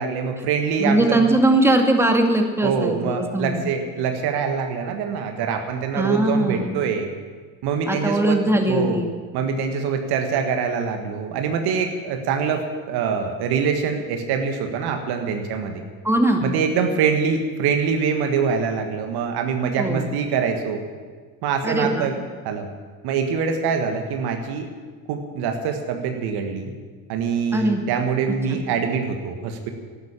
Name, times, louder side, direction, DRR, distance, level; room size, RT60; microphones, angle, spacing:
voice 1, 0.0-1.2 2.6-7.1 7.6-8.4 8.7-9.0 9.3-15.8 16.4-20.8 21.4-22.1 22.4-22.7 23.0-24.7 25.1-26.7 27.1-29.7, right 6 dB, 60° right, 5 dB, 1.7 m, -24 dB
voice 2, 0.8-3.6 5.9-6.8 7.9-9.1 16.0-16.5 19.8-20.1 21.6-22.1 27.5-27.8, right 1 dB, 5° right, 3 dB, 2.2 m, -20 dB
14.0 x 12.0 x 7.3 m, 1.5 s
figure-of-eight pair, 55°, 43 cm